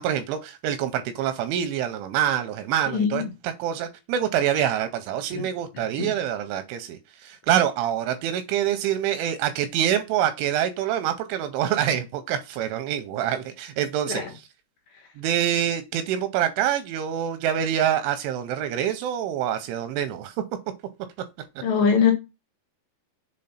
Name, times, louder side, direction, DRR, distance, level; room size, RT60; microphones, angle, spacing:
voice 1, 0.0-14.2 15.2-20.3, right 10 dB, 85° right, 2.8 m, -26 dB
voice 2, 2.9-3.3 5.3-5.4 6.0-6.1 14.1-14.3 21.6-22.1, left 6 dB, 70° left, 3.0 m, -22 dB
7.6 x 3.8 x 5.6 m
omnidirectional pair, 5.9 m